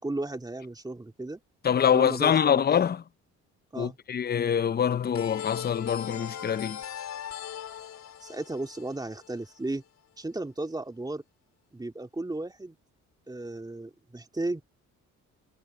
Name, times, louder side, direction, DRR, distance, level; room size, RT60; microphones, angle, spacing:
voice 1, 0.0-1.4 1.9-2.6 3.7-4.0 8.2-9.8 10.2-11.2 11.7-12.8 13.3-14.6, right 2 dB, 15° right, 3.1 m, -34 dB
voice 2, 1.6-3.0 3.8-6.8, left 8 dB, 30° left, 0.6 m, -25 dB
sound 1, 5.1-9.8, left 9 dB, 65° left, 3.7 m, -39 dB
cardioid pair, 90°, 30 cm